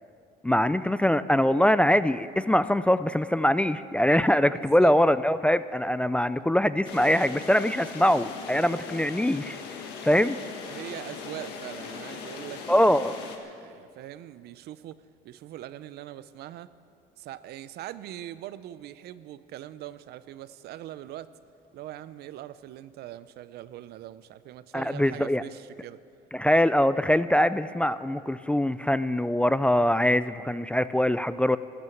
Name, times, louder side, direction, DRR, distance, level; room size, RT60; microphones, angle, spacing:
voice 1, 0.4-9.6 10.0-10.4 12.7-13.2 24.7-25.4 26.3-31.6, left 1 dB, 5° left, 14 dB, 0.3 m, -23 dB
voice 2, 4.5-4.9 10.6-12.6 13.4-16.7 17.2-21.3 21.7-26.0, right 13 dB, 70° right, 15 dB, 0.6 m, -42 dB
sound 1, 6.8-13.4, left 5 dB, 90° left, 1.7 m, -40 dB
14.5 x 11.0 x 7.8 m, 2.3 s
cardioid pair, 110°, 17 cm